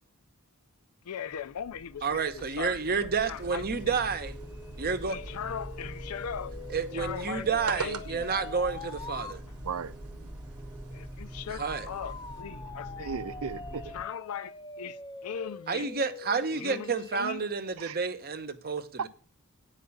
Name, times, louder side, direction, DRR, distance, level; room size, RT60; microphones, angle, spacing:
voice 1, 1.0-2.1 2.3-3.9 5.1-6.5 6.9-7.5 7.8-8.2 10.9-13.1 13.9-15.9 16.5-17.4, left 8 dB, 80° left, 0.5 m, -39 dB
sound 1, 1.2-14.0, right 1 dB, 5° right, 1.0 m, -44 dB
voice 2, 2.0-4.3 4.8-5.2 6.7-9.4 11.5-11.9 15.7-19.1, right 5 dB, 45° right, 0.8 m, -30 dB
sound 2, 3.2-12.4, right 4 dB, 85° right, 0.9 m, -46 dB
sound 3, 4.2-9.4 11.6-17.4, left 3 dB, 20° left, 0.5 m, -44 dB
voice 3, 13.0-13.9 17.8-18.0 19.0-19.1, right 6 dB, 65° right, 0.5 m, -35 dB
8.7 x 4.9 x 6.9 m
head